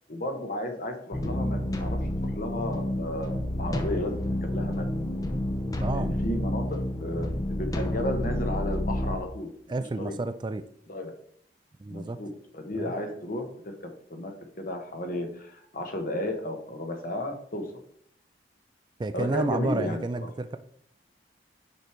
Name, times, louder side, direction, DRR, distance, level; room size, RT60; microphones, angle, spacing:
voice 1, 0.1-4.1 4.4-4.8 5.9-9.5 10.0-10.1 10.9-11.1 11.9-13.7 14.1-17.7 19.1-20.3, left 1 dB, 50° left, 5 dB, 1.1 m, -33 dB
sound 1, 1.1-9.2, left 1 dB, 20° left, 0.6 m, -29 dB
voice 2, 5.8-6.1 9.7-10.6 11.8-12.2 12.8-12.9 19.0-20.6, right 2 dB, 25° right, 11 dB, 0.3 m, -30 dB
6.5 x 4.9 x 4.4 m, 0.65 s
head